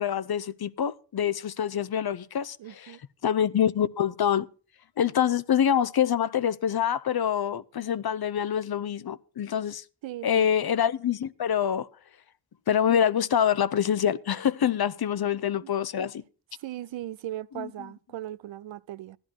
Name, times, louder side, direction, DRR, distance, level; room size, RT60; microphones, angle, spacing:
voice 1, 0.0-3.0 3.2-4.5 5.0-9.8 10.2-11.9 12.7-16.2 17.5-17.7, left 9 dB, 55° left, 0.7 m, -26 dB
voice 2, 2.6-3.0 10.0-10.5 15.6-15.7 16.6-19.2, right 13 dB, 80° right, 0.5 m, -38 dB
12.5 x 11.0 x 4.5 m
cardioid pair, 45°, 44 cm